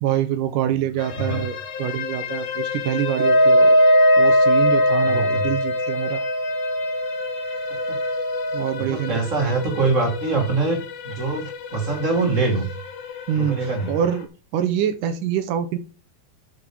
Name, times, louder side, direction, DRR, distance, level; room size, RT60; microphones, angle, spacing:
voice 1, 0.0-3.8 4.2-6.2 8.5-9.1 13.3-13.6 13.9-14.3 14.5-15.8, right 10 dB, 70° right, 10 dB, 2.2 m, -25 dB
sound 1, 1.0-14.3, left 8 dB, 80° left, 3.6 m, -34 dB
Wind instrument woodwind instrument, 3.1-8.8, equal, 15° right, 1.6 m, -19 dB
voice 2, 5.0-5.5 7.9-8.0 8.8-12.7 13.3-14.0, right 3 dB, 30° right, 2 dB, 1.6 m, -24 dB
11.0 x 5.2 x 6.0 m, 0.36 s
omnidirectional pair, 4.1 m